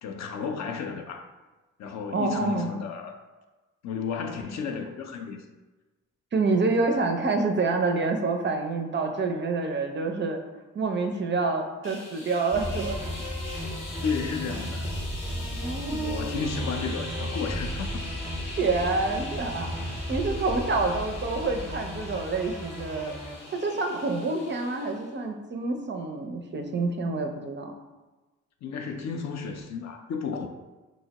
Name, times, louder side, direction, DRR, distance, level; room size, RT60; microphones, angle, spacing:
voice 1, 0.0-1.2 1.8-3.2 3.8-5.4 14.0-14.9 15.9-18.0 28.6-30.5, left 5 dB, 50° left, 5 dB, 0.4 m, -33 dB
voice 2, 2.1-2.7 6.3-10.4 10.7-13.0 15.5-16.5 18.6-23.1 23.5-27.7, right 3 dB, 30° right, 4 dB, 0.4 m, -27 dB
sound 1, 11.8-25.2, left 2 dB, 85° left, 0.8 m, -42 dB
sound 2, 12.5-23.4, equal, 5° right, 0.7 m, -34 dB
3.7 x 2.0 x 2.8 m, 1.2 s
hypercardioid pair, 45°, 37 cm